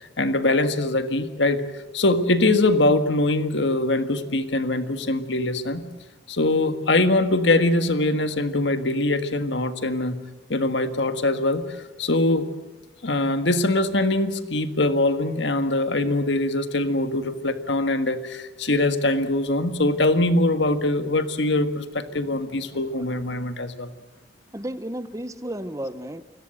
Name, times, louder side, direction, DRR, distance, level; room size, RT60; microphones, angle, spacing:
voice 1, 0.0-1.6 1.9-5.8 6.3-10.2 10.5-12.5 13.0-23.9, left 2 dB, 75° left, 9 dB, 1.7 m, -22 dB
voice 2, 22.1-22.5 22.9-23.1 24.5-26.2, right 1 dB, 15° right, 13 dB, 0.8 m, -34 dB
29.5 x 17.0 x 7.9 m, 1.1 s
head